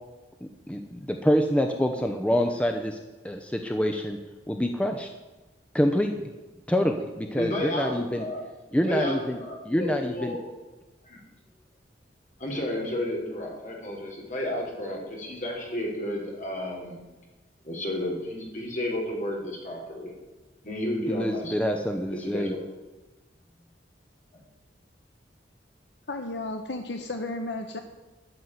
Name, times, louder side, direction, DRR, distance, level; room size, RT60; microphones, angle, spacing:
voice 1, 0.7-3.0 3.2-4.2 4.5-5.1 5.7-6.3 6.7-8.2 8.7-9.4 9.7-10.4 21.1-22.5, equal, 5° left, 4 dB, 0.7 m, -26 dB
voice 2, 7.3-8.4 8.7-10.4 11.0-11.2 12.4-17.0 17.6-20.1 20.6-21.7 22.1-22.7, left 1 dB, 45° left, -1 dB, 3.8 m, -32 dB
voice 3, 26.1-27.8, left 2 dB, 70° left, 6 dB, 1.0 m, -33 dB
12.0 x 6.3 x 9.6 m, 1.1 s
head